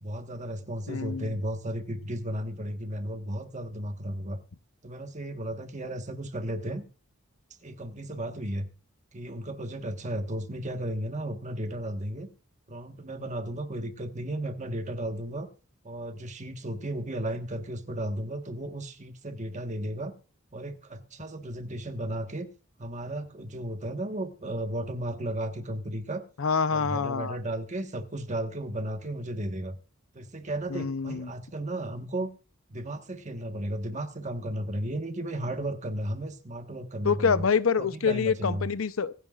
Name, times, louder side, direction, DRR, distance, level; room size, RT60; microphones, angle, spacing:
voice 1, 0.0-4.4 4.8-6.8 7.6-8.7 9.1-12.3 12.7-15.5 15.8-20.1 20.5-22.5 22.8-26.2 26.7-29.7 30.1-32.3 32.7-37.4 37.8-38.7, right 1 dB, 35° right, 1.4 m, -34 dB
voice 2, 0.9-1.4 26.4-27.4 30.7-31.3 37.0-39.1, left 5 dB, 75° left, 0.7 m, -26 dB
25.0 x 9.5 x 2.4 m
head